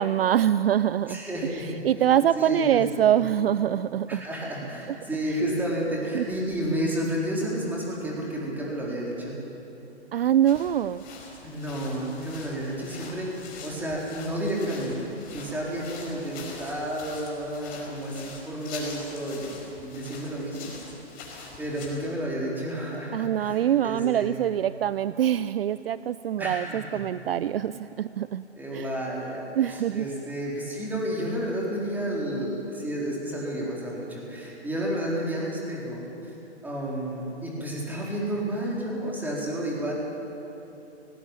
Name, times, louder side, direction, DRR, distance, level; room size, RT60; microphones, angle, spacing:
voice 1, 0.0-1.2 1.5-4.2 6.1-6.3 10.1-11.0 23.1-28.4 28.7-28.9 29.6-30.1, right 10 dB, 55° right, 16 dB, 0.5 m, -24 dB
voice 2, 1.1-3.2 4.1-9.5 11.4-13.3 13.6-20.7 21.6-24.3 26.4-27.0 28.5-36.0 36.6-39.9, right 1 dB, 5° right, -4 dB, 4.2 m, -31 dB
sound 1, 10.2-22.1, left 4 dB, 25° left, 4.9 m, -44 dB
19.0 x 17.0 x 8.8 m, 3.0 s
figure-of-eight pair, 125°, 35 cm